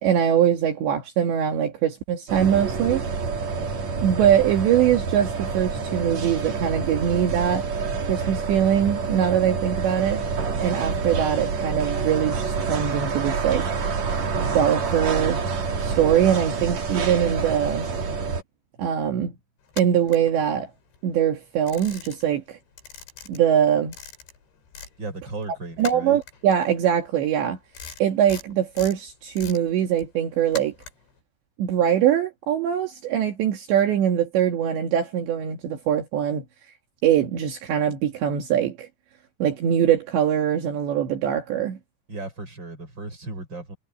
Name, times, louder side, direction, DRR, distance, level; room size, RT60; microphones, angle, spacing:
voice 1, 0.0-3.1 4.0-7.7 8.1-10.2 10.6-13.7 14.4-15.4 15.8-17.9 18.8-19.3 19.8-20.7 21.0-22.6 23.3-23.9 25.8-27.6 28.0-30.7 31.6-36.4 37.0-38.9 39.4-41.8, right 9 dB, 70° right, 4.3 m, -22 dB
sound 1, 2.3-18.4, right 5 dB, 45° right, 3.2 m, -27 dB
sound 2, 19.7-21.0 21.3-22.5 22.7-25.0 25.3-31.2, left 6 dB, 65° left, 7.8 m, -42 dB
voice 2, 25.0-26.2 42.1-43.8, right 2 dB, 20° right, 7.2 m, -35 dB
omnidirectional pair, 5.5 m